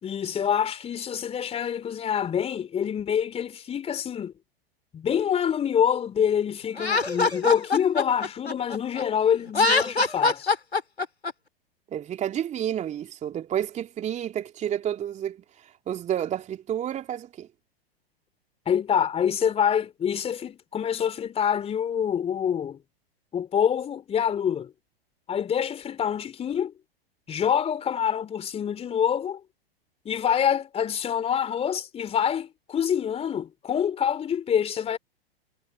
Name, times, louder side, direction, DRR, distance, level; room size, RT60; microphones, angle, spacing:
voice 1, 0.0-4.3 4.9-10.5 18.7-22.8 23.3-24.7 25.3-26.7 27.3-29.4 30.1-35.0, left 8 dB, 20° left, 3.4 m, -26 dB
Laughter, 6.8-9.0 9.5-11.3, left 3 dB, 80° left, 4.9 m, -23 dB
voice 2, 11.9-17.5, right 10 dB, 20° right, 2.8 m, -30 dB
figure-of-eight pair, 100°, 31 cm